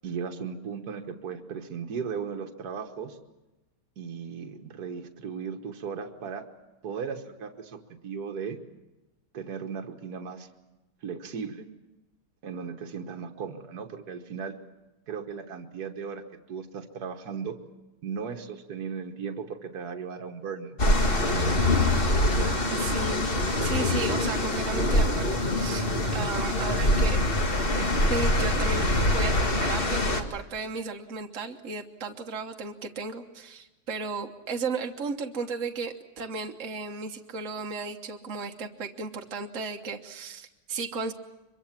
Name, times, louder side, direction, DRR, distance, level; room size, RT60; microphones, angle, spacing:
voice 1, 0.0-3.2 4.0-6.4 6.8-8.6 9.3-10.5 11.0-11.6 12.4-14.6 15.1-16.2 16.5-17.6 18.0-20.8 21.1-21.8 22.3-22.7, right 6 dB, 70° right, 4 dB, 1.8 m, -36 dB
sound 1, 20.8-30.2, left 1 dB, 35° left, 2.0 m, -24 dB
voice 2, 22.7-23.3 23.6-27.2 28.1-28.8 29.1-41.1, right 4 dB, 50° right, 3 dB, 1.6 m, -34 dB
25.0 x 22.5 x 7.4 m, 1.0 s
omnidirectional pair, 1.8 m